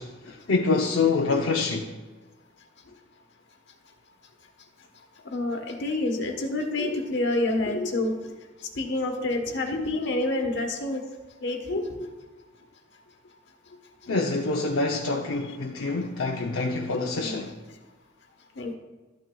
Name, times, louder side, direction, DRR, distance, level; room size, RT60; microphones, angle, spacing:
voice 1, 0.3-1.9 14.1-17.5, left 3 dB, 85° left, 0.7 m, -26 dB
voice 2, 5.3-8.3 8.8-11.0 11.4-11.9 17.1-17.5 18.6-18.7, left 2 dB, 65° left, 1.2 m, -28 dB
12.5 x 9.1 x 2.3 m
head